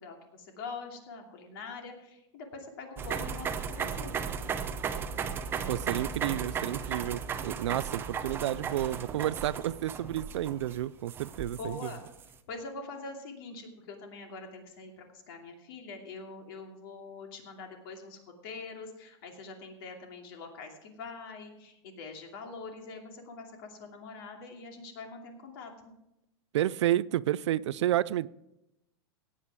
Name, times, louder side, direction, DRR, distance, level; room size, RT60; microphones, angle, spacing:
voice 1, 0.0-4.2 8.1-8.7 11.6-12.0 12.5-25.7, left 4 dB, 55° left, 2.7 m, -44 dB
sound 1, 3.0-12.2, right 6 dB, 15° right, 0.6 m, -35 dB
voice 2, 5.7-11.8 26.5-28.3, right 13 dB, 85° right, 0.4 m, -30 dB
17.0 x 8.5 x 4.8 m
supercardioid pair, 160°, 14 cm